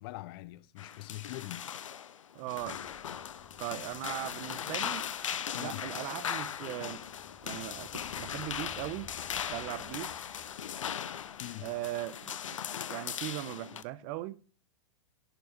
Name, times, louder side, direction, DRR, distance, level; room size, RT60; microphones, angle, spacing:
voice 1, 0.0-1.7 5.5-5.9 11.4-11.7, left 17 dB, 45° left, 0.6 m, -43 dB
sound 1, 0.8-13.8, left 9 dB, 75° left, 1.0 m, -39 dB
voice 2, 2.3-2.8 3.6-5.1 5.5-7.0 7.4-9.1 9.5-10.1 11.6-12.6 12.9-14.4, right 16 dB, 40° right, 0.9 m, -39 dB
sound 2, 2.6-12.7, left 8 dB, 25° left, 1.2 m, -57 dB
11.5 x 7.0 x 7.5 m
hypercardioid pair, 110°, 17 cm